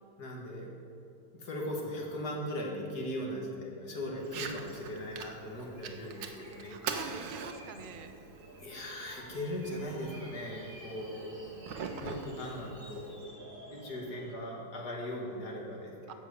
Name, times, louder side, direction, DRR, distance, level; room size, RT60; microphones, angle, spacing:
voice 1, 0.2-0.7 1.3-6.8 8.6-11.4 12.0-13.2 13.7-15.9, left 1 dB, 65° left, -1 dB, 2.2 m, -39 dB
sound 1, 4.0-14.3, right 1 dB, 30° right, 1.7 m, -52 dB
Fire, 4.2-13.2, right 6 dB, 90° right, 1.6 m, -44 dB
voice 2, 6.6-8.1 11.0-11.8 16.1-16.2, right 4 dB, 55° right, 6 dB, 0.6 m, -46 dB
15.0 x 6.0 x 6.9 m, 2.8 s
omnidirectional pair, 1.9 m